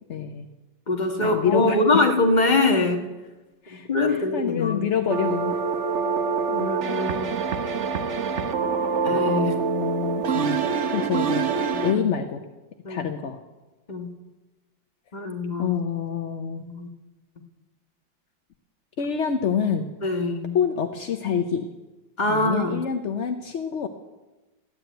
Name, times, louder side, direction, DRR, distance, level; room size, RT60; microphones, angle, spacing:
voice 1, 0.1-0.5 1.2-2.0 3.6-5.6 6.5-6.7 9.4-10.6 10.9-11.5 11.8-12.4 12.9-13.4 15.6-16.6 19.0-19.9 20.5-21.7 22.3-23.9, left 7 dB, 60° left, 5 dB, 0.8 m, -27 dB
voice 2, 0.9-3.0 3.7-4.8 6.6-7.4 9.0-9.6 11.7-11.8 12.8-13.1 13.9-14.1 15.1-15.7 16.6-16.9 20.0-20.6 22.2-22.8, left 2 dB, 25° left, 3 dB, 1.5 m, -23 dB
sound 1, 5.1-11.9, right 5 dB, 45° right, 1.0 m, -25 dB
14.0 x 9.6 x 9.1 m, 1.1 s
omnidirectional pair, 2.1 m